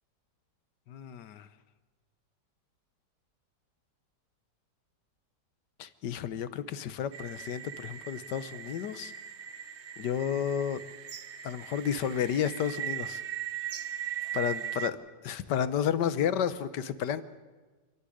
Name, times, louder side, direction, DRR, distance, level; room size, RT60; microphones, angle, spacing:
voice 1, 0.9-1.5 5.8-9.1 10.0-10.8 11.4-13.2 14.3-15.0 15.2-17.2, left 8 dB, 75° left, 14 dB, 1.6 m, -31 dB
sound 1, 7.1-14.9, right 10 dB, 50° right, 1.0 m, -39 dB
27.0 x 11.5 x 10.0 m, 1.3 s
omnidirectional pair, 1.8 m